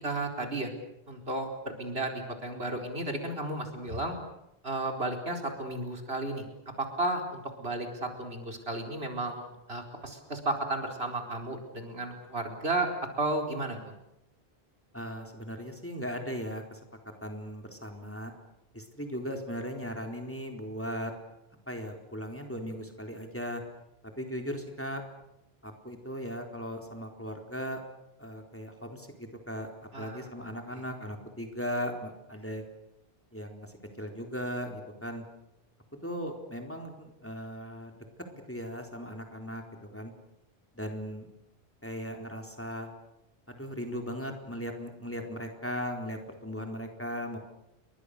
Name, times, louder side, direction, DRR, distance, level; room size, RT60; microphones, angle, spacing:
voice 1, 0.0-0.7 1.1-1.5 1.8-4.2 4.6-6.5 6.8-12.9 13.2-13.9 29.9-30.3, right 2 dB, 75° right, 3 dB, 4.8 m, -33 dB
voice 2, 14.9-16.8 17.2-18.3 18.7-21.1 21.7-23.6 24.2-25.0 25.6-27.8 28.2-32.6 33.3-35.2 36.0-37.9 38.3-40.1 40.7-41.3 41.8-42.9 43.5-47.4, equal, 10° left, 3 dB, 4.1 m, -38 dB
30.0 x 23.5 x 6.8 m, 0.84 s
omnidirectional pair, 1.0 m